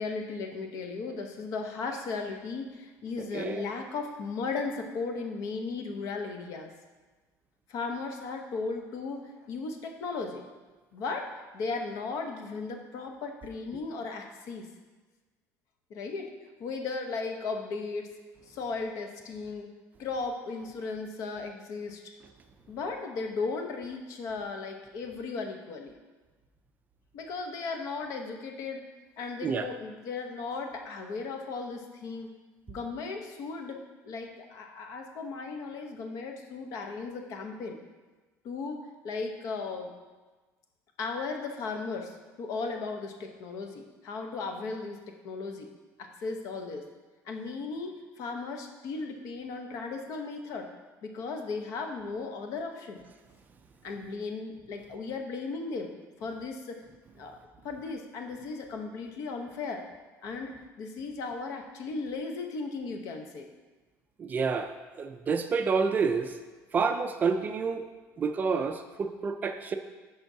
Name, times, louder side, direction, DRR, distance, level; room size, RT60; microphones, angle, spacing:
voice 1, 0.0-6.7 7.7-10.4 10.9-14.7 15.9-16.3 16.6-18.1 18.5-19.7 20.0-22.0 22.7-25.9 27.1-28.8 29.2-32.3 32.7-37.8 38.4-39.9 41.0-45.7 46.0-46.9 47.2-50.7 51.0-53.0 53.8-55.9 56.2-56.8 57.2-57.4 57.6-59.8 60.2-63.5, left 4 dB, 55° left, 4 dB, 0.8 m, -36 dB
voice 2, 3.3-3.7 29.4-29.7 64.2-66.3 66.7-67.9 68.2-69.8, right 5 dB, 25° right, 7 dB, 0.4 m, -29 dB
10.5 x 5.3 x 2.7 m, 1.3 s
cardioid pair, 155°, 7 cm